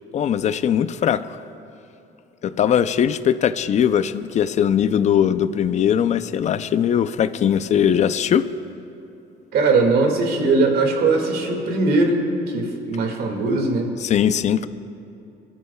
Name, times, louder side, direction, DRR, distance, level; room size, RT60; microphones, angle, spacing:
voice 1, 0.1-1.4 2.4-8.5 14.0-14.7, left 9 dB, 45° left, 13 dB, 0.5 m, -20 dB
voice 2, 9.5-13.9, right 3 dB, 65° right, 2 dB, 2.1 m, -20 dB
27.5 x 12.5 x 2.3 m, 2.8 s
cardioid pair, 110°, 17 cm